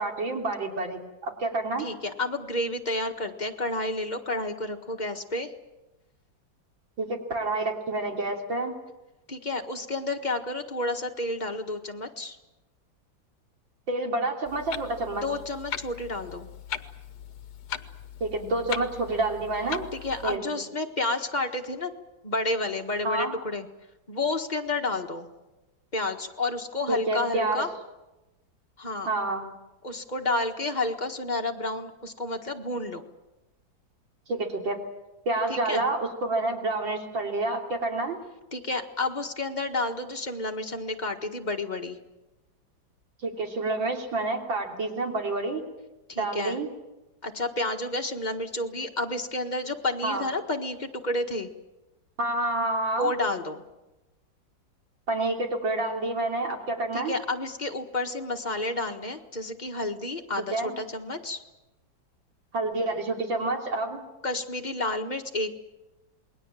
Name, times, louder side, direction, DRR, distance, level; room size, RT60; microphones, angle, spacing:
voice 1, 0.0-1.9 7.0-8.8 13.9-15.2 18.2-19.8 20.2-20.4 23.0-23.3 26.9-27.7 29.1-29.5 34.3-34.8 35.3-38.2 43.2-45.6 46.1-46.7 50.0-50.3 52.2-53.1 55.1-57.1 60.5-60.7 62.5-64.0, right 2 dB, 75° right, 2 dB, 3.8 m, -28 dB
voice 2, 1.8-5.5 9.3-12.4 15.1-16.5 19.9-21.9 22.2-23.7 24.1-25.3 25.9-27.7 28.8-29.1 29.8-33.0 35.5-35.8 38.5-42.0 46.1-46.6 47.2-51.5 52.9-53.6 56.9-61.4 64.2-65.5, left 2 dB, 25° left, 3 dB, 1.6 m, -30 dB
Clock, 14.5-20.4, left 8 dB, 60° left, 1.5 m, -39 dB
28.0 x 21.0 x 7.6 m, 1.0 s
omnidirectional pair, 2.1 m